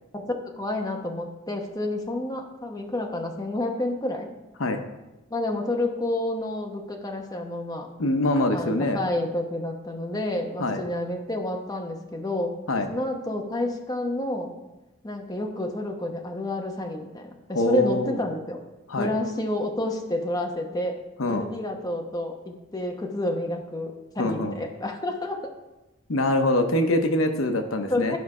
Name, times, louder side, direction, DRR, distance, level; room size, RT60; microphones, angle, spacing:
voice 1, 0.1-4.3 5.3-7.9 8.5-12.6 12.9-14.5 15.0-18.6 19.0-21.0 21.3-25.4 26.9-27.0 27.9-28.2, left 1 dB, 20° left, 2 dB, 1.0 m, -29 dB
voice 2, 8.0-9.0 10.6-10.8 12.7-12.9 17.5-18.2 18.9-19.1 21.2-21.5 24.2-24.5 26.1-28.2, left 1 dB, 75° left, 6 dB, 0.8 m, -24 dB
12.0 x 5.3 x 4.9 m, 1.0 s
head